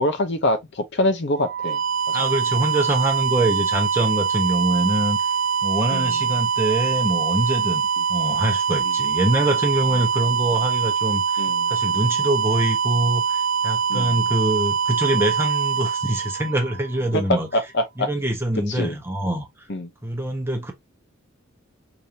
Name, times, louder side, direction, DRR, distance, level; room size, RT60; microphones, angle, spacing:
voice 1, 0.0-1.8 2.1-2.2 5.9-6.2 8.0-8.1 8.8-8.9 11.4-11.7 13.9-14.2 17.1-18.1 18.7-19.0 19.7-19.9, left 1 dB, 60° left, 0.7 m, -25 dB
sound 1, 1.3-17.1, right 6 dB, 65° right, 0.5 m, -23 dB
voice 2, 2.1-5.3 5.6-7.8 8.1-11.4 11.7-17.5 18.0-19.5 20.0-20.7, right 1 dB, 10° right, 1.0 m, -24 dB
4.9 x 2.7 x 2.7 m
head